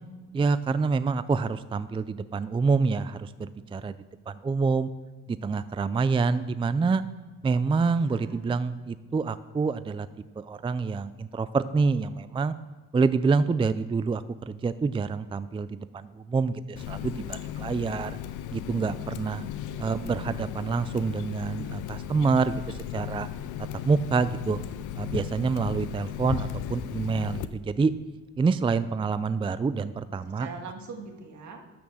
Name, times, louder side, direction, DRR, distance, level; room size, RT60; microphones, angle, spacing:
voice 1, 0.3-3.9 4.3-4.9 5.3-7.0 7.4-10.1 10.4-12.5 12.9-18.2 18.5-19.4 19.8-23.3 23.8-24.6 25.0-27.9 28.4-30.5, right 4 dB, 15° right, 14 dB, 0.4 m, -27 dB
voice 2, 7.9-8.5 19.2-20.4 30.1-31.6, right 4 dB, 70° right, 3 dB, 2.3 m, -43 dB
Water tap faucet, 16.8-27.5, left 10 dB, 85° left, 0.7 m, -36 dB
12.5 x 6.0 x 7.1 m, 1.4 s
cardioid pair, 90°, 30 cm